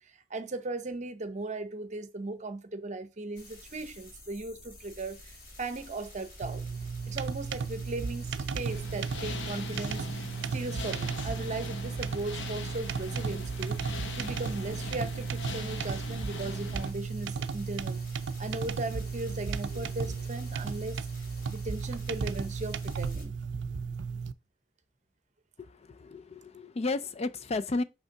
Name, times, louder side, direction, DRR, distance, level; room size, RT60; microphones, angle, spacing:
voice 1, 0.3-6.6 7.1-13.8 14.2-18.0 18.4-21.0 21.5-23.3, right 2 dB, 40° right, 0.8 m, -37 dB
sound 1, 3.4-23.2, left 1 dB, 50° left, 2.2 m, -51 dB
sound 2, 6.4-24.3, right 5 dB, 75° right, 0.4 m, -35 dB
sound 3, 8.7-16.9, left 3 dB, 90° left, 0.9 m, -41 dB
voice 2, 25.6-27.8, left 3 dB, 35° left, 0.4 m, -33 dB
5.5 x 3.4 x 5.7 m
head